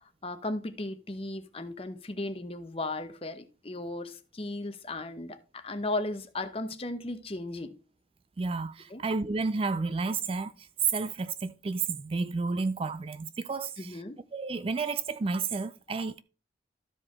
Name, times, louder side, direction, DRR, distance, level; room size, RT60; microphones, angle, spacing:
voice 1, 0.2-7.8 8.9-9.0 13.8-14.2, left 2 dB, 30° left, 0.9 m, -36 dB
voice 2, 8.4-14.0 14.3-16.2, right 4 dB, 30° right, 0.3 m, -31 dB
13.0 x 4.9 x 3.6 m
head